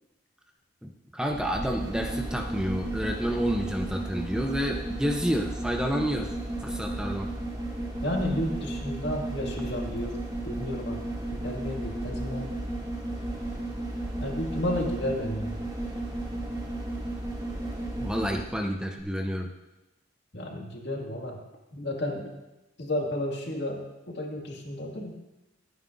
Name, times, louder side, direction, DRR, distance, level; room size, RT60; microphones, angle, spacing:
voice 1, 0.8-6.3 6.6-7.4 18.0-19.5, equal, 5° right, 2 dB, 0.6 m, -29 dB
sound 1, 1.3-18.6 19.0-19.1, right 1 dB, 25° right, 2.4 m, -34 dB
voice 2, 8.0-10.2 10.4-11.0 11.3-12.6 14.2-15.6 20.3-21.4 21.7-22.3 22.8-25.1, left 1 dB, 60° left, 0 dB, 2.1 m, -32 dB
26.0 x 9.4 x 2.6 m, 1.0 s
head